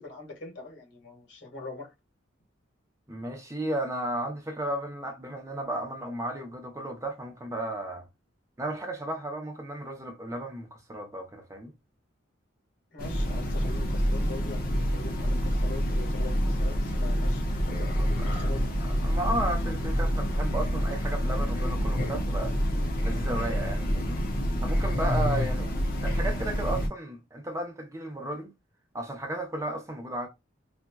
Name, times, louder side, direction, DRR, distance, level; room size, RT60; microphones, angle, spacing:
voice 1, 0.0-1.9 12.9-18.8 25.4-25.7 26.4-26.5, left 3 dB, 65° left, 1.5 m, -43 dB
voice 2, 3.1-8.0 8.6-11.7 18.0-18.1 18.8-22.6 23.0-24.2 24.6-25.7 26.0-28.5 28.9-30.3, right 1 dB, 15° right, 0.6 m, -34 dB
Train, 13.0-26.9, equal, 50° left, 0.9 m, -27 dB
4.1 x 2.3 x 2.2 m
head